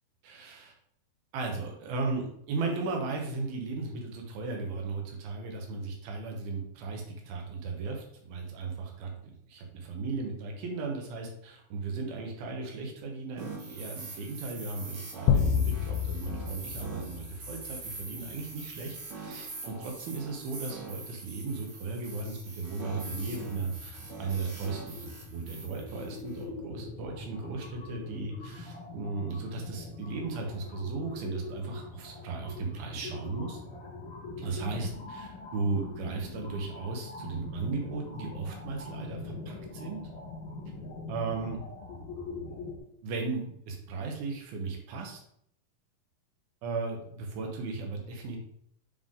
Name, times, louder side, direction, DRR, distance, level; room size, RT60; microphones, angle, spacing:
voice 1, 0.2-0.7 1.3-33.6 34.4-40.0 41.1-41.6 43.0-45.2 46.6-48.4, right 4 dB, 85° right, 1 dB, 3.0 m, -36 dB
sound 1, 13.4-26.4, right 3 dB, 60° right, 3.2 m, -43 dB
sound 2, 15.3-17.8, left 7 dB, 85° left, 2.3 m, -28 dB
sound 3, 22.9-42.8, left 3 dB, 65° left, 2.7 m, -43 dB
7.0 x 3.7 x 3.6 m, 0.70 s
omnidirectional pair, 4.1 m